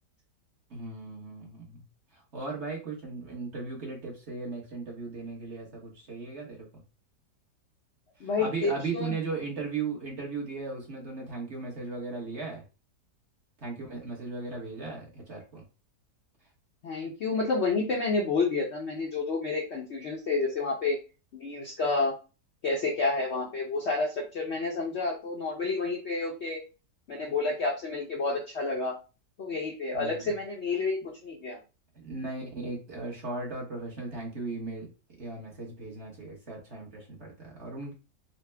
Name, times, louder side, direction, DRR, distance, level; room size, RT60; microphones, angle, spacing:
voice 1, 0.7-1.8 2.1-6.7 8.2-12.6 13.6-15.6 29.9-30.3 31.9-34.9 35.2-37.9, right 3 dB, 45° right, -2 dB, 1.1 m, -37 dB
voice 2, 8.2-9.1 16.8-21.0 21.3-22.2 22.6-26.6 27.1-28.9 29.4-31.6, left 3 dB, 60° left, -1 dB, 0.7 m, -29 dB
4.2 x 2.1 x 3.3 m, 0.32 s
omnidirectional pair, 1.8 m